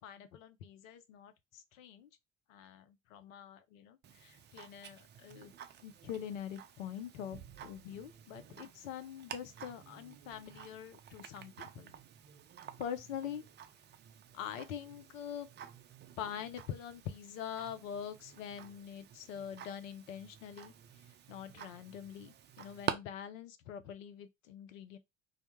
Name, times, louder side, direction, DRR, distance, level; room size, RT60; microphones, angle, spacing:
voice 1, 0.0-2.1 2.5-5.5 5.8-11.9 12.8-13.4 14.3-15.5 16.2-20.7 21.3-25.0, left 9 dB, 75° left, 0.6 m, -44 dB
Tick-tock, 4.0-22.9, right 9 dB, 30° right, 0.4 m, -49 dB
2.1 x 2.1 x 2.9 m
hypercardioid pair, 65°, 39 cm